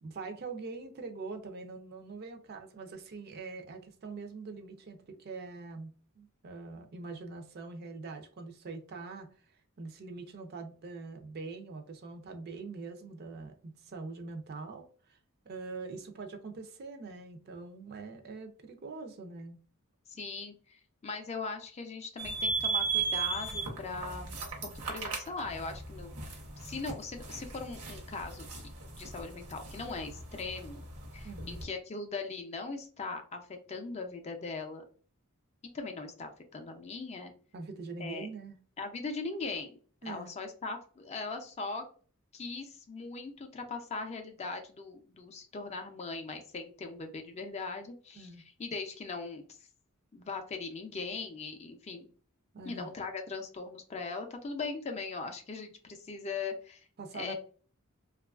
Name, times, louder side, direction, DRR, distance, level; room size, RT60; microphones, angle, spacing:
voice 1, 0.0-5.9 6.1-9.3 9.8-15.2 15.4-19.6 31.2-31.6 37.5-38.6 40.0-40.3 48.1-48.4 52.5-52.9 57.0-57.3, right 3 dB, 45° right, 6 dB, 0.4 m, -43 dB
voice 2, 20.1-24.4 24.6-26.2 26.6-28.6 29.0-30.8 31.1-34.8 35.7-37.3 38.0-38.3 38.8-39.8 40.0-41.8 42.3-48.3 48.6-49.4 50.1-52.1 52.6-56.9 57.1-57.3, left 4 dB, 30° left, 5 dB, 0.4 m, -40 dB
sound 1, 22.2-31.6, right 4 dB, 80° right, 0.8 m, -37 dB
2.9 x 2.3 x 2.3 m, 0.42 s
head